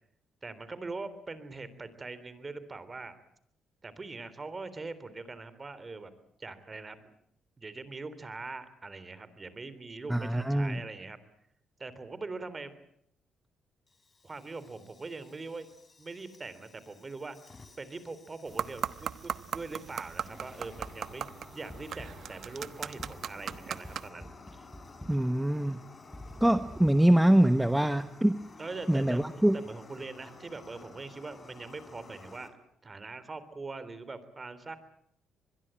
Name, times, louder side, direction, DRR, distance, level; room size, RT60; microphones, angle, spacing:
voice 1, 0.4-3.1 3.8-6.1 6.4-7.1 7.6-11.2 11.8-12.7 14.2-15.7 16.0-17.4 17.8-24.3 24.6-24.7 28.6-32.5 32.8-34.8, right 3 dB, 30° right, 14 dB, 3.3 m, -42 dB
voice 2, 10.1-10.8 25.1-25.8 26.4-28.4 28.9-29.6, right 1 dB, 5° right, 11 dB, 1.0 m, -24 dB
Fire, 13.9-32.5, left 3 dB, 30° left, 4.4 m, -53 dB
sound 1, 18.5-24.1, right 8 dB, 60° right, 1.1 m, -39 dB
sound 2, 20.8-21.2 21.7-22.4 23.0-25.4 26.1-26.9, left 1 dB, 10° left, 5.2 m, -48 dB
25.0 x 21.5 x 8.9 m, 0.70 s
cardioid pair, 90°, 0 cm